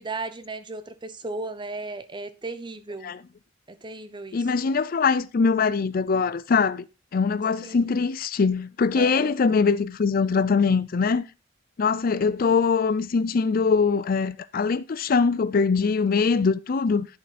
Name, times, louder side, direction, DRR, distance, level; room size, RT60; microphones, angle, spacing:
voice 1, 0.0-3.2 3.7-4.4 7.6-7.9 9.0-9.3, right 3 dB, 25° right, 0.9 m, -36 dB
voice 2, 4.3-6.9 7.1-11.2 11.8-17.1, left 5 dB, 50° left, 0.4 m, -22 dB
11.0 x 6.9 x 4.2 m
head